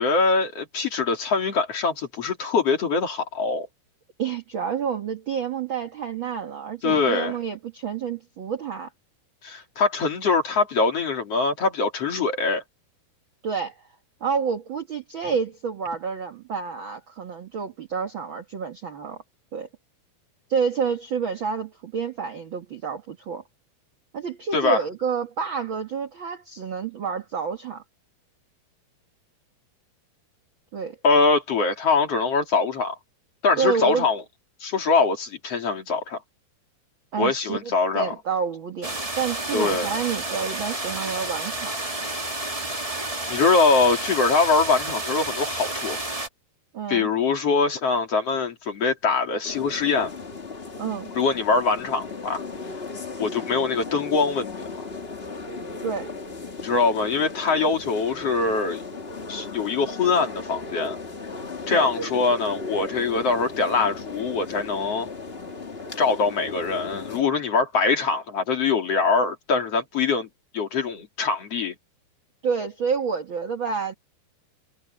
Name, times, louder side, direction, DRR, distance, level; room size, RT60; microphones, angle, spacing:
voice 1, 0.0-3.7 6.8-7.3 9.4-12.6 24.5-24.8 31.0-33.0 33.4-34.2 34.6-36.2 37.2-38.1 39.5-39.9 43.3-46.0 46.9-50.1 51.1-52.4 53.2-54.9 56.6-58.8 59.3-61.0 61.7-65.1 66.0-70.3 70.5-71.7, left 4 dB, 40° left, 3.3 m, -23 dB
voice 2, 4.2-8.9 13.4-13.7 14.2-19.2 19.5-19.7 20.5-23.4 24.1-27.8 30.7-31.0 33.6-34.1 37.1-41.7 46.7-47.1 50.8-51.1 55.8-56.1 61.7-61.9 72.4-73.9, right 6 dB, 60° right, 1.3 m, -29 dB
sound 1, 38.8-46.3, right 2 dB, 15° right, 1.4 m, -30 dB
sound 2, 49.4-67.2, left 3 dB, 70° left, 0.5 m, -36 dB
omnidirectional pair, 4.6 m